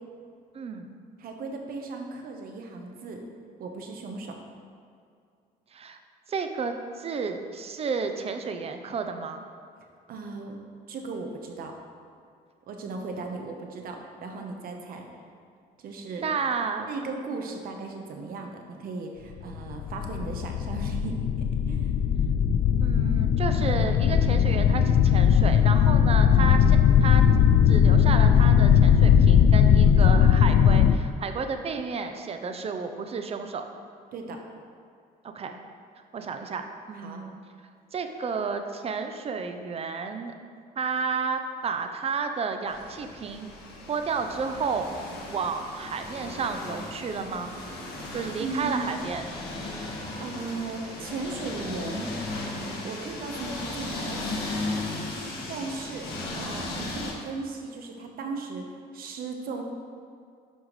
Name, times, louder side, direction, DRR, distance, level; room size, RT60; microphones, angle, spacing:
voice 1, 0.5-1.0 5.7-6.0 6.3-9.4 16.2-16.9 22.8-27.2 27.7-33.6 35.2-35.6 36.1-37.4 37.9-40.3 40.8-43.5 43.9-44.9 45.3-47.5 48.1-49.2, right 5 dB, 35° right, 6 dB, 0.7 m, -31 dB
voice 2, 1.2-3.2 3.6-4.4 10.1-10.6 10.9-11.7 12.7-15.0 15.8-16.3 16.9-21.1 21.7-21.9 34.1-34.4 36.9-37.2 48.4-48.9 50.2-52.1 52.5-54.6 55.5-56.1 56.3-58.6 58.9-59.6, right 3 dB, 60° right, 3 dB, 1.0 m, -36 dB
sound 1, 19.5-31.0, left 8 dB, 50° left, 0.4 m, -19 dB
sound 2, 42.7-57.1, left 2 dB, 75° left, 1.8 m, -36 dB
10.5 x 5.6 x 3.2 m, 2.3 s
cardioid pair, 110°, 17 cm